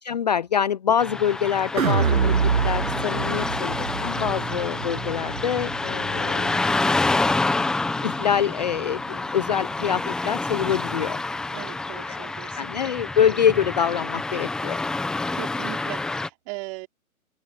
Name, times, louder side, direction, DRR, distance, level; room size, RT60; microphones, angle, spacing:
voice 1, 0.0-2.3 2.6-6.6 8.0-11.2 11.9-12.3 12.6-14.8, left 8 dB, 30° left, 0.7 m, -25 dB
Car passing by / Traffic noise roadway noise, 1.0-16.3, left 3 dB, ahead, 0.9 m, -28 dB
sound 1, 1.8-8.0 8.4-8.5, right 6 dB, 70° right, 7.3 m, -27 dB
voice 2, 11.5-12.7 15.3-16.9, right 29 dB, 20° right, 4.7 m, -38 dB
open air
hypercardioid pair, 155°, 43 cm